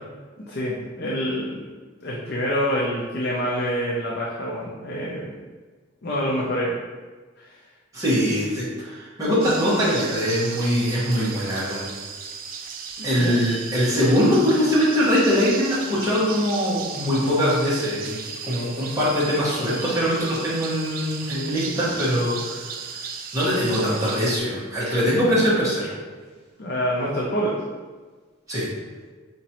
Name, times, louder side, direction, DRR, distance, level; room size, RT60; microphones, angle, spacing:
voice 1, 0.4-1.6 2.0-5.3 6.0-6.7 7.4-7.6 13.0-13.4 26.6-27.5, equal, 55° left, -4 dB, 0.6 m, -26 dB
voice 2, 7.9-11.9 13.0-18.2 18.4-22.7 23.3-25.9 28.5-28.7, equal, 15° right, -9 dB, 1.3 m, -22 dB
sound 1, 9.4-24.4, right 6 dB, 45° right, 0.3 m, -36 dB
5.1 x 3.0 x 2.9 m, 1.4 s
head